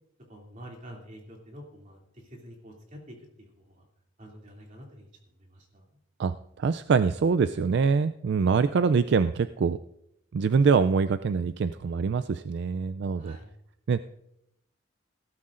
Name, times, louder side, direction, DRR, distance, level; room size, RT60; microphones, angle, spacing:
voice 1, 0.3-3.9 4.2-5.1 5.4-5.8 13.2-13.5, equal, 40° right, -1 dB, 2.6 m, -47 dB
voice 2, 6.2-9.8 10.3-13.4 13.9-14.0, right 5 dB, 65° right, 13 dB, 0.4 m, -24 dB
18.5 x 12.5 x 2.5 m, 0.81 s
head